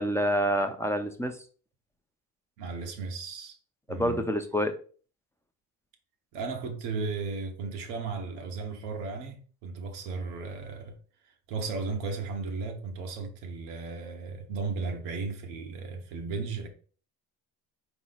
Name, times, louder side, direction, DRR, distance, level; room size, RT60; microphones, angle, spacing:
voice 1, 0.0-1.4 3.9-4.7, equal, 5° left, 0.5 m, -27 dB
voice 2, 2.6-3.6 3.9-4.2 6.3-11.0 11.5-16.7, right 4 dB, 85° right, 1.1 m, -35 dB
4.1 x 3.0 x 3.9 m
supercardioid pair, 90°, 41 cm